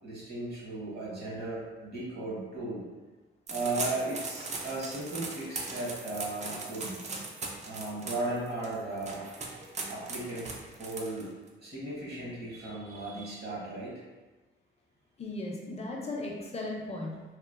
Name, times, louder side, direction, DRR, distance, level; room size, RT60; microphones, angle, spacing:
voice 1, 0.0-2.8 3.5-7.0 7.6-9.3 9.9-10.5 10.8-11.3 11.6-14.0, right 2 dB, 50° right, -6 dB, 1.1 m, -36 dB
sound 1, 3.5-11.5, right 3 dB, 35° right, 0.4 m, -39 dB
voice 2, 15.2-17.2, left 2 dB, 30° left, -1 dB, 0.5 m, -36 dB
2.9 x 2.1 x 2.4 m, 1.2 s
cardioid pair, 115°, 21 cm